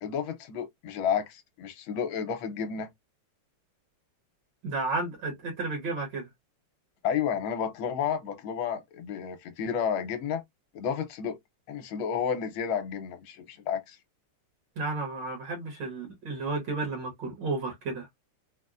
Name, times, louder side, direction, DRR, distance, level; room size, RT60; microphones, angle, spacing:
voice 1, 0.0-2.9 7.0-10.4 10.7-11.4 11.7-14.0, left 7 dB, 75° left, 1.4 m, -31 dB
voice 2, 4.6-6.3 14.8-18.1, right 3 dB, 60° right, 1.5 m, -32 dB
3.9 x 2.0 x 2.3 m
omnidirectional pair, 2.4 m